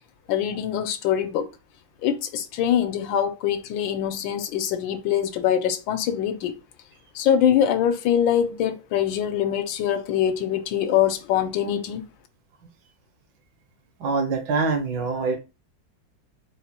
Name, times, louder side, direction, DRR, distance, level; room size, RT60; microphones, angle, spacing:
voice 1, 0.3-1.5 2.0-6.5 7.1-12.0, left 9 dB, 85° left, 1.3 m, -23 dB
voice 2, 14.0-15.4, right 4 dB, 75° right, 1.5 m, -24 dB
4.3 x 2.2 x 4.1 m
omnidirectional pair, 2.1 m